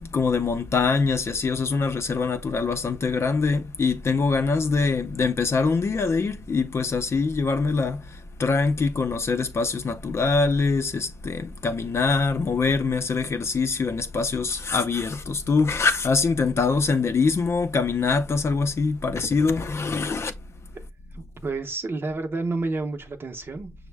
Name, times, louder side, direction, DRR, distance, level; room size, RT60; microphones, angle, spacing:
voice 1, 0.0-8.0 8.4-20.3, left 4 dB, 55° left, 0.5 m, -24 dB
voice 2, 21.1-23.7, right 3 dB, 45° right, 0.7 m, -30 dB
6.1 x 2.1 x 3.3 m
wide cardioid pair, 115°, 5 cm